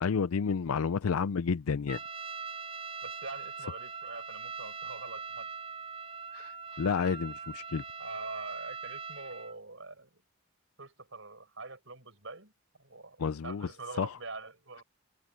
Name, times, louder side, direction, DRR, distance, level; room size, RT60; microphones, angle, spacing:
voice 1, 0.0-2.0 6.3-6.5 6.8-7.8 13.2-13.7 14.0-14.1, left 5 dB, 90° left, 0.5 m, -30 dB
Trumpet, 1.9-9.6, right 5 dB, 25° right, 4.2 m, -41 dB
voice 2, 3.0-5.5 8.0-10.2 10.8-12.5 12.8-14.8, right 3 dB, 60° right, 7.7 m, -44 dB
head